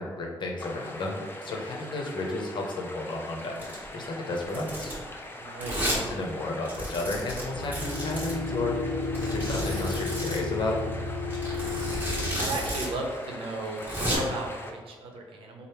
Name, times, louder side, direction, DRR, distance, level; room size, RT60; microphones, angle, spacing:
voice 1, 0.0-4.9 5.8-8.8 9.2-10.8, left 2 dB, 60° left, 0 dB, 0.7 m, -32 dB
sound 1, 0.6-14.7, left 1 dB, 25° left, 0.5 m, -43 dB
Domestic sounds home sounds, 3.6-3.8 4.4-5.0 5.6-6.0 6.3-6.4 6.7-8.4 9.1-10.4 11.3-12.9 13.1-13.2 13.7-14.2, equal, 20° right, 1.3 m, -32 dB
voice 2, 5.4-5.8 12.3-15.7, right 2 dB, 80° right, 1 dB, 0.6 m, -35 dB
sound 2, 7.5-12.5, left 3 dB, 90° left, 0.4 m, -32 dB
3.4 x 2.0 x 4.3 m, 1.5 s
cardioid pair, 85°, 9 cm